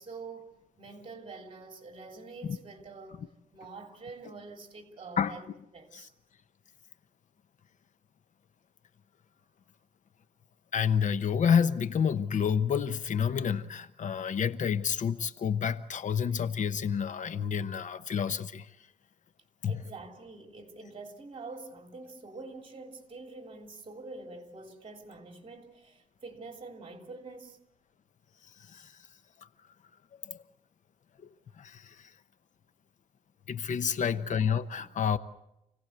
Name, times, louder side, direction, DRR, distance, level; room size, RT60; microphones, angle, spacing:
voice 1, 0.0-3.2 3.5-5.5 5.7-6.1 19.7-27.6 33.9-34.3 34.8-34.9, right 3 dB, 40° right, 3.3 m, -46 dB
voice 2, 10.7-18.7 19.6-19.8 28.6-28.9 30.2-30.4 31.6-32.1 33.5-35.2, left 7 dB, 65° left, 0.9 m, -29 dB
28.0 x 17.5 x 8.1 m
wide cardioid pair, 125°, 14 cm